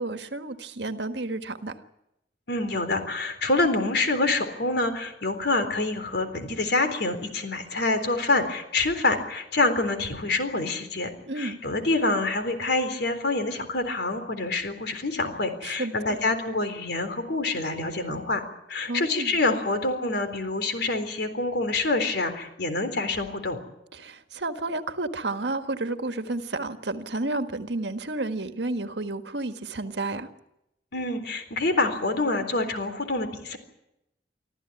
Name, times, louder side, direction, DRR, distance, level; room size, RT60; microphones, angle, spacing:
voice 1, 0.0-1.7 11.3-11.6 15.6-16.2 18.9-19.4 23.9-30.3, right 2 dB, 75° right, 8 dB, 1.6 m, -31 dB
voice 2, 2.5-18.4 18.7-23.6 30.9-33.6, left 2 dB, 65° left, 8 dB, 3.9 m, -26 dB
25.5 x 14.5 x 9.9 m, 0.84 s
head